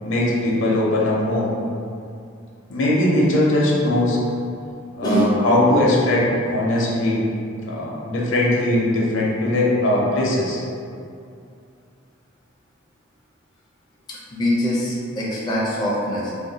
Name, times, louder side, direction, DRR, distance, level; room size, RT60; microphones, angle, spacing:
voice 1, 0.0-1.5 2.7-4.2 5.0-7.2 7.6-10.6, left 1 dB, 65° left, -4 dB, 0.6 m, -20 dB
voice 2, 5.0-5.4 14.1-16.3, equal, 20° left, -6 dB, 0.4 m, -23 dB
2.5 x 2.1 x 3.9 m, 2.5 s
head